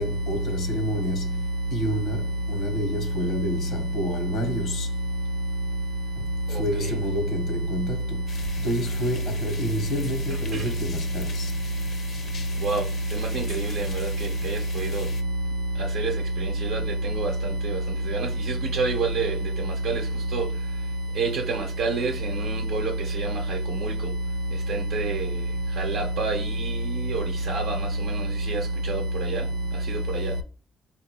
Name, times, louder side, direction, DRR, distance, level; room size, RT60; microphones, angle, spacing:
voice 1, 0.0-1.4 1.7-4.9 6.2-8.2 8.6-11.5, equal, 80° left, 1.1 m, -30 dB
sound 1, 8.3-15.2, left 5 dB, 50° left, 0.5 m, -42 dB
voice 2, 13.3-14.1 14.4-15.0 16.0-16.1 16.7-16.8 17.2-17.3 18.1-18.3 18.7-19.3 19.8-20.0 20.3-20.4 21.2-22.1 22.4-22.9 23.2-23.9 24.7-25.2 25.8-26.4 27.1-27.7 28.5-28.6 28.9-29.0 29.3-29.4, right 3 dB, 85° right, 0.7 m, -26 dB
4.2 x 2.6 x 2.9 m
cardioid pair, 90°, 0 cm